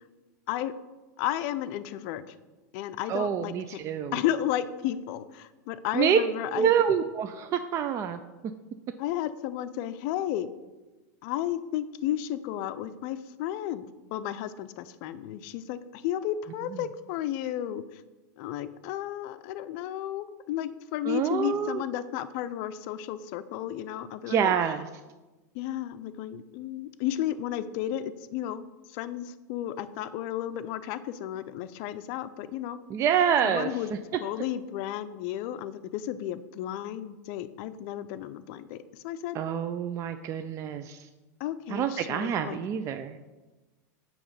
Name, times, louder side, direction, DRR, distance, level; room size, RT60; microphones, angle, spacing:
voice 1, 1.2-2.2 2.7-3.8 4.1-6.7 9.0-10.5 11.2-13.8 14.1-17.8 18.4-24.5 25.5-28.6 28.9-32.8 33.4-33.9 34.2-39.4 41.4-42.6, left 12 dB, 55° left, 12 dB, 0.5 m, -33 dB
voice 2, 3.1-4.2 5.9-6.2 6.5-8.2 16.7-16.8 21.0-21.8 24.3-24.9 32.9-34.0 39.3-41.1 41.7-43.2, right 8 dB, 30° right, 8 dB, 0.3 m, -27 dB
8.4 x 3.1 x 5.5 m, 1.2 s
hypercardioid pair, 115°, 9 cm